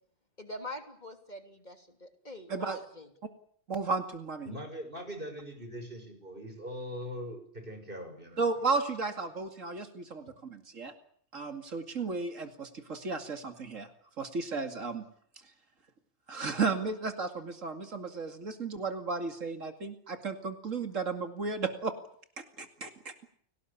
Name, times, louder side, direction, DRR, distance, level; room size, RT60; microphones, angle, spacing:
voice 1, 0.4-3.1, left 1 dB, 35° left, 6 dB, 3.2 m, -44 dB
voice 2, 2.5-2.8 3.7-4.5 8.4-10.9 11.3-13.9 14.2-15.0 16.3-21.9 22.4-23.1, right 4 dB, 85° right, 7 dB, 2.8 m, -34 dB
voice 3, 4.4-8.4, equal, 45° right, 6 dB, 6.3 m, -41 dB
29.5 x 19.0 x 8.5 m, 0.62 s
omnidirectional pair, 1.3 m